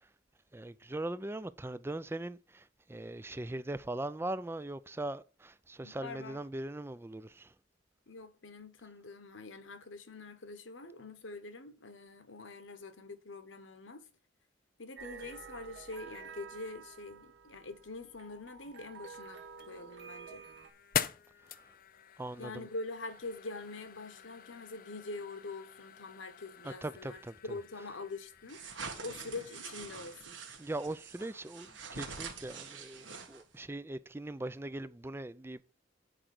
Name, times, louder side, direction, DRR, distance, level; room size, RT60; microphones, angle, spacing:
voice 1, 0.5-7.5 22.2-22.7 26.6-27.6 30.6-35.7, right 1 dB, 15° right, 0.4 m, -40 dB
voice 2, 5.8-6.4 8.1-14.1 14.8-20.4 22.4-27.2 27.4-28.6 29.0-30.4, left 3 dB, 90° left, 1.2 m, -44 dB
sound 1, 15.0-20.7, right 5 dB, 65° right, 1.2 m, -50 dB
sound 2, 19.3-30.2, left 9 dB, 50° left, 0.5 m, -44 dB
sound 3, 28.5-33.6, right 5 dB, 85° right, 1.6 m, -45 dB
7.9 x 5.0 x 6.0 m
head